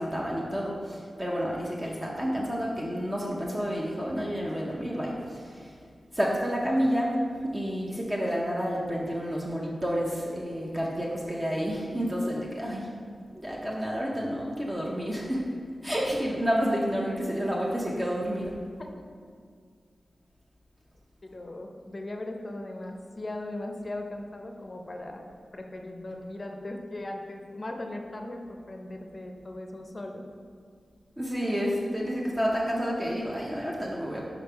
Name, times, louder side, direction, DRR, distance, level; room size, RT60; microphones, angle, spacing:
voice 1, 0.0-5.8 6.1-7.2 7.5-12.9 13.3-15.5 15.8-18.5 31.2-34.3, equal, 20° right, -3 dB, 0.7 m, -30 dB
voice 2, 21.2-25.2 25.5-30.3, left 1 dB, 30° left, 3 dB, 0.6 m, -38 dB
5.2 x 4.9 x 4.5 m, 2.1 s
wide cardioid pair, 125°, 0 cm